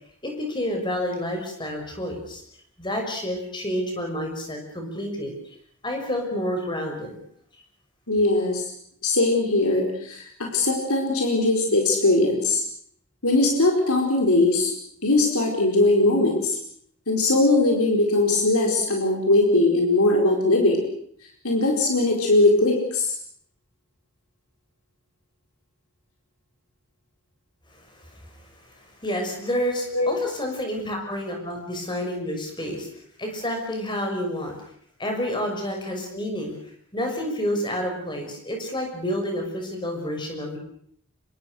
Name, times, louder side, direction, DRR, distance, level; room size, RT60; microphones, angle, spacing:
voice 1, 0.2-2.4 2.8-5.3 5.8-7.1 27.9-28.3 28.7-32.9 33.2-34.5 35.0-36.6 36.9-40.6, equal, 20° left, 3 dB, 6.2 m, -29 dB
voice 2, 8.1-8.6 9.0-12.6 13.2-14.7 15.0-16.6 17.1-20.8 21.4-23.1 29.9-30.1, left 2 dB, 85° left, 1 dB, 4.7 m, -20 dB
26.0 x 23.0 x 6.5 m, 0.66 s
head